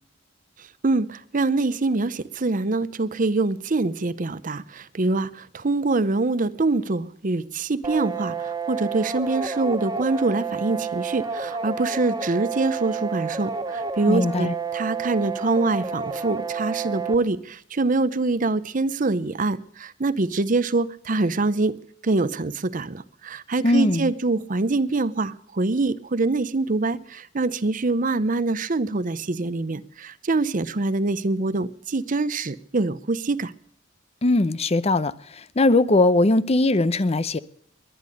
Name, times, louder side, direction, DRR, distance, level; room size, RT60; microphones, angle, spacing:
voice 1, 0.8-21.8 22.0-33.5, right 3 dB, 45° right, 0.7 m, -24 dB
sound 1, 7.8-17.2, right 5 dB, 20° right, 1.7 m, -30 dB
voice 2, 14.1-14.5 23.6-24.1 34.2-37.4, left 2 dB, 35° left, 0.6 m, -20 dB
21.5 x 10.5 x 6.5 m
head